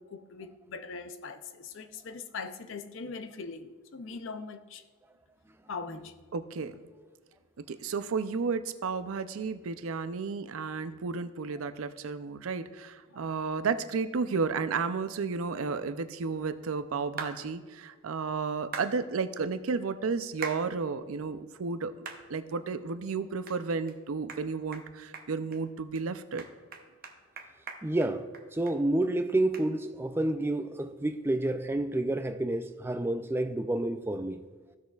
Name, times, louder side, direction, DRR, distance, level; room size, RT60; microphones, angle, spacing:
voice 1, 0.0-4.8 5.7-6.1 13.1-13.4, left 4 dB, 60° left, 0.5 m, -41 dB
voice 2, 6.3-6.8 7.6-21.9 22.3-26.5, right 5 dB, 80° right, 0.5 m, -32 dB
sound 1, 17.2-17.4 18.7-18.9 20.4-20.6 21.1-21.2 22.0-22.2 22.7-22.8 23.5-23.6 23.9-24.0 24.3-24.4 24.7-24.9 25.1-25.6 25.9-26.0 26.4-28.8 29.0-29.1 29.5-29.7, right 5 dB, 45° right, 0.8 m, -40 dB
voice 3, 27.8-28.3 28.5-34.4, right 1 dB, 10° right, 0.3 m, -29 dB
14.5 x 6.4 x 2.3 m
head